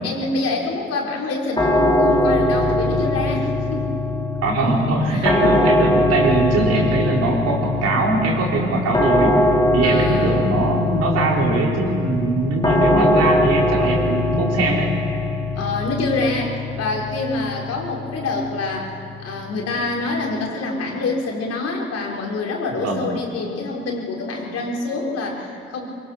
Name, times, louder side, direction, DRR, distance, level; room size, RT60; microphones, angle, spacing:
voice 1, 0.0-4.1 5.1-5.3 9.8-10.6 15.6-25.9, left 3 dB, 55° left, -1 dB, 4.6 m, -26 dB
sound 1, 1.6-20.5, left 1 dB, 15° left, 3.1 m, -22 dB
voice 2, 4.4-9.5 9.7-14.9 22.7-23.0, right 2 dB, 55° right, -1 dB, 4.5 m, -21 dB
24.0 x 22.5 x 6.5 m, 2.6 s
hypercardioid pair, 50°, 30 cm